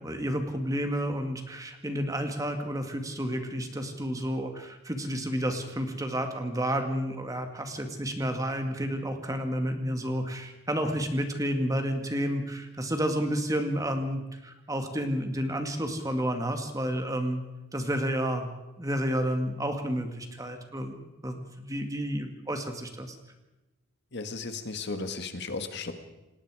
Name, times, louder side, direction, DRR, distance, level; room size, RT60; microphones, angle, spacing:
voice 1, 0.0-17.4 17.7-18.5 18.8-20.9 21.2-23.2, equal, 15° right, 5 dB, 1.9 m, -30 dB
voice 2, 24.1-25.9, left 3 dB, 55° left, 7 dB, 1.8 m, -35 dB
28.0 x 18.5 x 4.9 m, 1.0 s
head